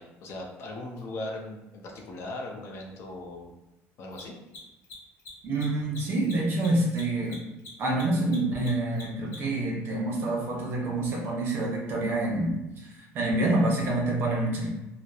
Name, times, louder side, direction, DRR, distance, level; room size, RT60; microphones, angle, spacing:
voice 1, 0.0-3.5 4.0-4.4, left 2 dB, 55° left, 0 dB, 0.5 m, -39 dB
Mechanisms, 1.0-1.1 4.0-9.6, left 2 dB, 70° left, 1.0 m, -45 dB
voice 2, 5.4-7.4 7.8-14.7, right 2 dB, 45° right, -2 dB, 0.7 m, -27 dB
2.8 x 2.1 x 2.3 m, 0.98 s
cardioid pair, 140°, 5 cm